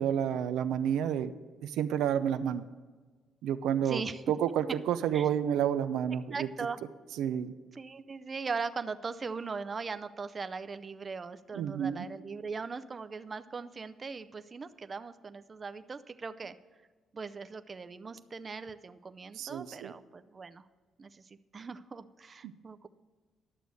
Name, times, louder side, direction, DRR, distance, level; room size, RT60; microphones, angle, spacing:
voice 1, 0.0-1.3 1.6-2.6 3.4-4.0 4.3-6.5 7.2-7.5 11.5-12.1 19.4-19.9 22.4-22.5, right 9 dB, 85° right, 10 dB, 0.5 m, -30 dB
voice 2, 3.8-4.3 5.1-5.3 6.1-6.8 7.7-16.6 17.1-20.7 21.0-22.9, right 4 dB, 35° right, 11 dB, 0.5 m, -40 dB
11.5 x 6.8 x 6.3 m, 1.4 s
cardioid pair, 90°, 0 cm